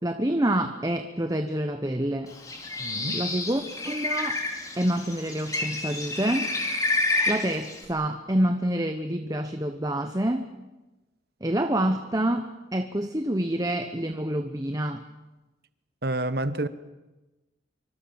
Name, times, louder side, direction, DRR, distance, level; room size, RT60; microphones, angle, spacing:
voice 1, 0.0-2.3 3.1-4.4 4.8-6.5 7.3-10.5 11.4-15.0, right 1 dB, 20° right, 1.0 m, -27 dB
Bird, 2.3-7.8, left 2 dB, 20° left, 3.9 m, -29 dB
voice 2, 2.8-3.2 16.0-16.7, right 1 dB, 55° right, 1.3 m, -28 dB
26.0 x 24.5 x 7.2 m
head